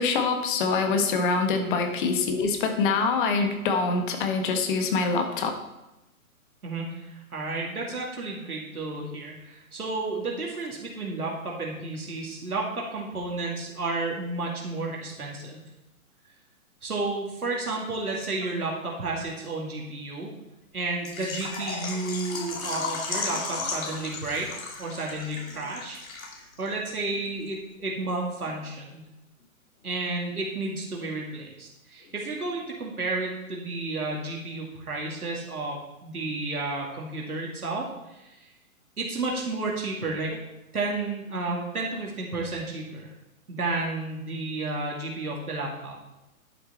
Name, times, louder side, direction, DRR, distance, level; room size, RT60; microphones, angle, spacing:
voice 1, 0.0-5.5, left 4 dB, 35° left, 5 dB, 1.6 m, -25 dB
voice 2, 6.6-15.6 16.8-20.3 20.7-26.0 26.3-29.0 29.8-38.4 39.0-40.3 40.7-43.1 43.5-46.0, right 2 dB, 90° right, -2 dB, 2.5 m, -32 dB
Water / Liquid, 21.1-26.7 26.9-27.0 27.5-27.6, left 4 dB, 70° left, 2.3 m, -35 dB
11.0 x 6.5 x 4.3 m, 0.95 s
hypercardioid pair, 135°, 43 cm